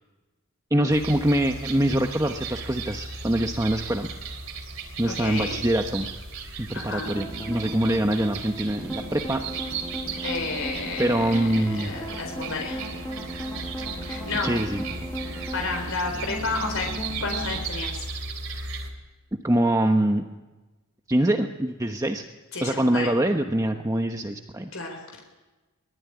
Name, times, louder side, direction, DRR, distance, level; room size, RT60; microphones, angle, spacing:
voice 1, 0.7-4.1 5.0-6.1 6.6-9.6 11.0-11.9 14.4-14.8 19.4-20.2 21.1-22.2 22.6-24.7, right 1 dB, 15° right, 4 dB, 1.1 m, -24 dB
sound 1, 0.9-18.9, right 4 dB, 75° right, 3.8 m, -36 dB
voice 2, 5.1-5.6 6.7-7.1 10.2-11.4 11.7-12.8 14.1-14.6 15.5-18.1 22.5-23.1 24.7-25.0, left 3 dB, 70° left, 2 dB, 4.0 m, -31 dB
sound 2, 7.0-17.6, equal, 10° left, 6.7 m, -36 dB
23.5 x 20.0 x 9.6 m, 1.2 s
head